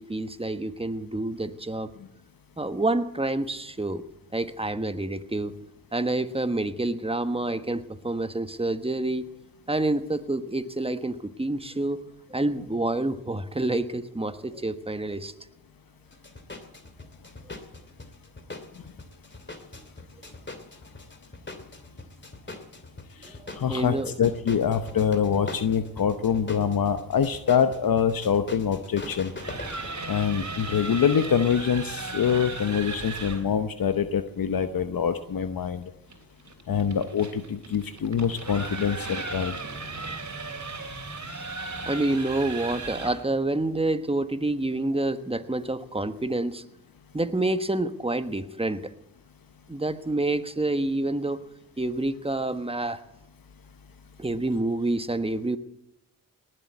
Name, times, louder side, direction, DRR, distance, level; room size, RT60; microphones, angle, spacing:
voice 1, 0.0-1.9 2.6-4.0 4.3-5.5 5.9-9.3 9.7-12.0 12.3-15.3 23.2-24.1 38.7-38.9 41.8-46.6 47.1-48.8 49.7-51.4 51.8-53.0 54.2-55.6, right 2 dB, 15° right, 10 dB, 1.3 m, -28 dB
sound 1, 16.1-29.9, left 2 dB, 30° left, 2.7 m, -42 dB
voice 2, 23.2-29.3 30.1-35.9 36.7-39.6, left 7 dB, 75° left, 9 dB, 0.9 m, -25 dB
sound 2, 29.2-33.5 36.1-43.3, right 3 dB, 50° right, 3.4 m, -36 dB
19.0 x 7.8 x 9.7 m, 0.86 s
cardioid pair, 45°, 35 cm